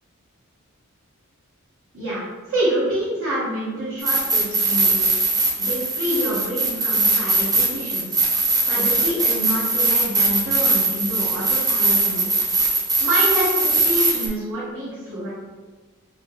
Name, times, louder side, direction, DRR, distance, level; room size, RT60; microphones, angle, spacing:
voice 1, 1.9-5.0 5.6-8.2 8.7-12.3 13.0-15.3, equal, 65° right, -12 dB, 1.1 m, -27 dB
sound 1, 4.0-14.3, right 2 dB, 15° right, 0.5 m, -21 dB
3.1 x 2.8 x 3.8 m, 1.4 s
head